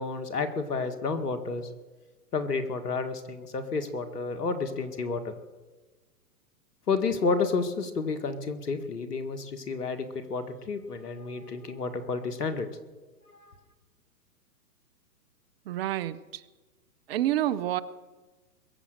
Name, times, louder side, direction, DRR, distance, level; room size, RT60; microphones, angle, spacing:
voice 1, 0.0-1.7 2.3-5.3 6.9-12.7 13.4-13.5, left 4 dB, 80° left, 8 dB, 1.9 m, -30 dB
voice 2, 15.7-16.4 17.1-17.8, right 13 dB, 40° right, 17 dB, 0.6 m, -28 dB
21.5 x 7.6 x 6.5 m, 1.2 s
hypercardioid pair, 120°, 46 cm